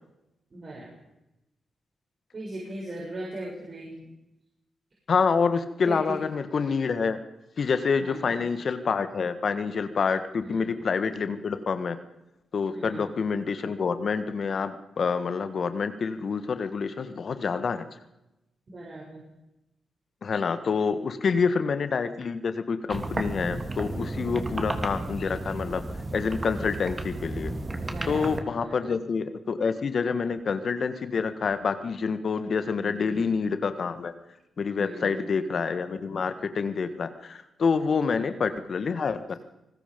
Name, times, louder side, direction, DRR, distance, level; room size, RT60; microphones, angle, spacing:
voice 1, 0.5-0.9 2.3-4.1 5.8-6.2 8.0-8.4 10.4-10.7 12.7-13.1 18.7-19.2 21.3-21.6 24.4-24.5 26.6-26.8 27.8-28.9 32.8-33.2 34.8-35.3 38.0-38.5, right 1 dB, 50° right, -4 dB, 7.7 m, -39 dB
voice 2, 5.1-7.2 7.6-12.0 12.5-17.9 20.2-25.8 26.1-27.5 28.1-34.1 34.6-39.3, left 5 dB, 60° left, 10 dB, 1.7 m, -27 dB
sound 1, 22.9-28.4, right 2 dB, 30° right, 2.9 m, -33 dB
26.0 x 20.0 x 5.4 m, 0.94 s
supercardioid pair, 50°, 0 cm